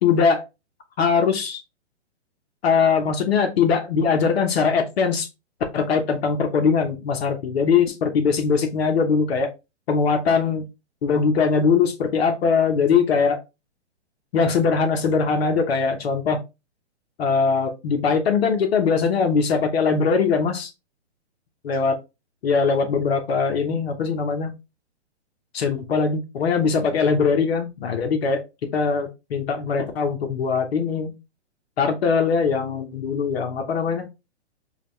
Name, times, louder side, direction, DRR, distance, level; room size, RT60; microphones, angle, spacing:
voice 1, 0.0-0.4 1.0-1.6 2.6-5.3 5.7-9.5 9.9-10.6 11.0-13.4 14.3-16.4 17.2-20.7 21.6-21.9 22.4-24.5 25.5-28.4 28.7-31.1 31.8-34.1, left 5 dB, 60° left, 5 dB, 0.9 m, -21 dB
5.0 x 2.4 x 3.1 m, 0.25 s
hypercardioid pair, 135°, 35 cm